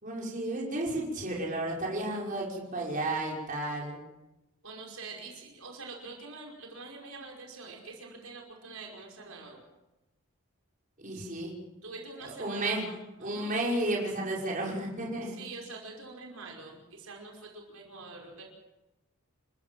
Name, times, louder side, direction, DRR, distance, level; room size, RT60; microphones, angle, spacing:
voice 1, 0.0-4.0 11.0-11.5 12.2-12.8 13.2-15.3, right 1 dB, 35° right, -3 dB, 5.7 m, -32 dB
voice 2, 4.6-9.6 11.1-11.3 11.8-13.6 15.2-18.5, right 3 dB, 70° right, 0 dB, 5.4 m, -45 dB
29.5 x 14.5 x 7.8 m, 0.96 s
head